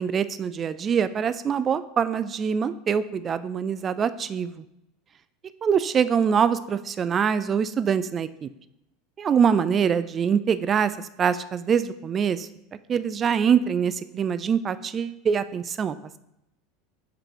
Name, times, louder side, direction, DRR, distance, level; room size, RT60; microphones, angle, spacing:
voice 1, 0.0-4.6 5.6-8.5 9.2-10.9 11.2-12.5 12.9-16.0, right 7 dB, 30° right, 14 dB, 0.3 m, -24 dB
6.7 x 4.9 x 3.0 m, 0.85 s
figure-of-eight pair, 80°, 0 cm